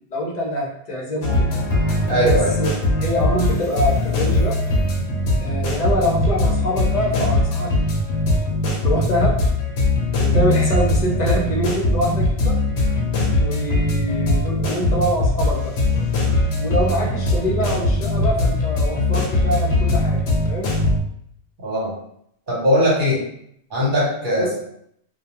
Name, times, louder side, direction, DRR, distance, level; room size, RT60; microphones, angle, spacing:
voice 1, 0.1-1.5 2.2-2.7 3.0-4.6 5.4-7.9 8.8-9.4 10.2-12.5 13.4-15.7 16.6-20.7 24.4-24.5, equal, 45° left, -2 dB, 0.7 m, -24 dB
sound 1, 1.2-21.0, left 2 dB, 80° left, 0.8 m, -20 dB
voice 2, 2.1-2.5 21.6-21.9 22.5-23.2 23.7-24.6, equal, 55° right, -6 dB, 1.1 m, -19 dB
2.3 x 2.2 x 2.9 m, 0.71 s
omnidirectional pair, 1.1 m